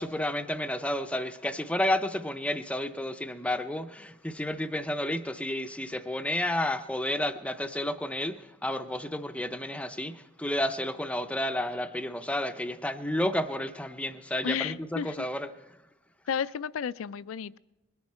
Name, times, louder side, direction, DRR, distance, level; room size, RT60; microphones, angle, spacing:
voice 1, 0.0-15.5, left 1 dB, 5° left, 0.5 m, -31 dB
voice 2, 14.4-15.3 16.3-17.6, left 7 dB, 70° left, 0.4 m, -32 dB
21.5 x 10.5 x 4.3 m
head